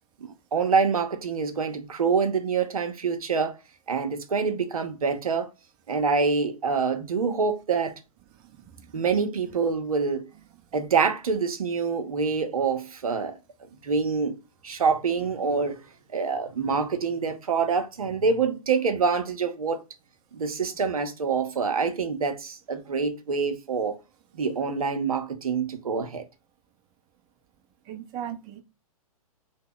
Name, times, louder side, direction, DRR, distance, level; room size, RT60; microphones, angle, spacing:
voice 1, 0.2-3.5 3.9-5.5 5.9-7.9 8.9-10.3 10.7-13.4 13.8-14.4 14.6-15.8 16.1-19.8 20.3-24.0 24.3-26.2, right 5 dB, 70° right, 0.7 m, -26 dB
voice 2, 8.4-8.9 27.9-28.6, right 10 dB, 25° right, 0.5 m, -38 dB
2.8 x 2.1 x 3.7 m
figure-of-eight pair, 115°, 20 cm